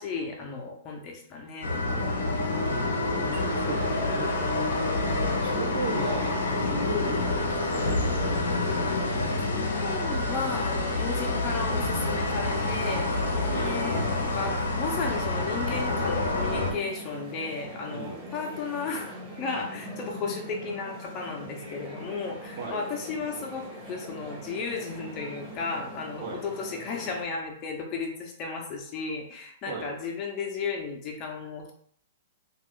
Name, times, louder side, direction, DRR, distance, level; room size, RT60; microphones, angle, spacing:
voice 1, 0.0-1.7 9.5-31.7, left 4 dB, 35° left, 1 dB, 0.7 m, -34 dB
sound 1, 1.6-16.7, left 2 dB, 85° left, 0.7 m, -27 dB
voice 2, 1.9-2.6 3.2-6.4 6.7-8.9 13.5-13.9 17.9-18.3 22.6-22.8 26.2-26.4 29.7-29.9, right 3 dB, 50° right, 0 dB, 0.9 m, -37 dB
sound 2, 12.5-27.2, equal, 20° right, 1.1 m, -42 dB
2.5 x 2.4 x 3.6 m, 0.62 s
hypercardioid pair, 125°, 0 cm